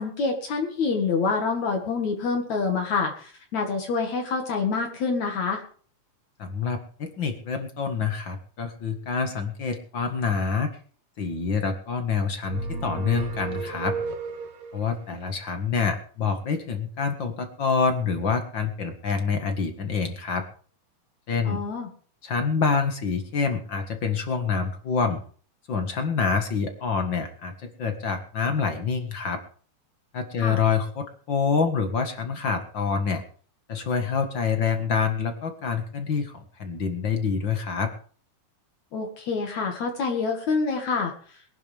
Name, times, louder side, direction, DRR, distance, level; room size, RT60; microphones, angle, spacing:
voice 1, 0.0-5.6 21.4-21.9 30.4-30.6 38.9-41.1, left 4 dB, 60° left, 2 dB, 3.1 m, -26 dB
voice 2, 6.4-10.7 11.2-14.0 14.7-20.4 21.3-21.6 22.2-25.2 25.7-29.4 30.1-33.2 33.7-37.9, left 5 dB, 45° left, 6 dB, 1.9 m, -26 dB
sound 1, 12.4-14.9, right 4 dB, 70° right, 2.7 m, -33 dB
22.5 x 10.5 x 3.5 m, 0.43 s
omnidirectional pair, 3.7 m